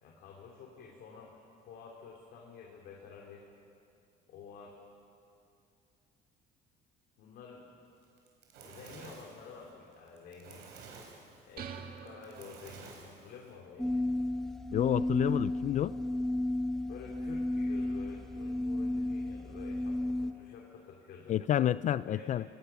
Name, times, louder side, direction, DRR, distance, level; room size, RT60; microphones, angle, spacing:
voice 1, 0.0-1.4 1.7-3.5 4.3-4.8 7.2-7.7 8.6-10.7 11.5-14.0 16.9-21.4 21.9-22.3, left 5 dB, 75° left, -1 dB, 2.9 m, -50 dB
Fire, 8.0-13.5, right 4 dB, 85° right, 4.4 m, -52 dB
sound 1, 11.6-13.2, right 7 dB, 60° right, 1.7 m, -46 dB
sound 2, 13.8-20.3, left 1 dB, ahead, 1.0 m, -33 dB
voice 2, 14.7-15.9 21.3-22.4, left 11 dB, 45° left, 16 dB, 0.4 m, -29 dB
26.0 x 18.0 x 5.9 m, 2.5 s
cardioid pair, 110°, 17 cm